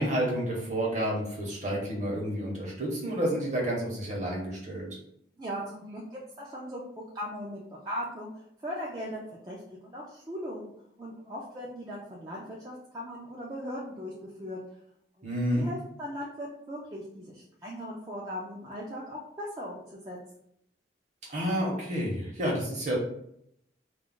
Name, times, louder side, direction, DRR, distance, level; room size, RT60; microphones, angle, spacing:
voice 1, 0.0-4.9 15.2-15.7 21.3-23.0, equal, 40° right, -2 dB, 0.9 m, -30 dB
voice 2, 5.4-10.7 11.0-14.1 14.4-14.6 15.2-20.2, equal, 20° right, -6 dB, 0.4 m, -39 dB
2.3 x 2.1 x 3.7 m, 0.74 s
head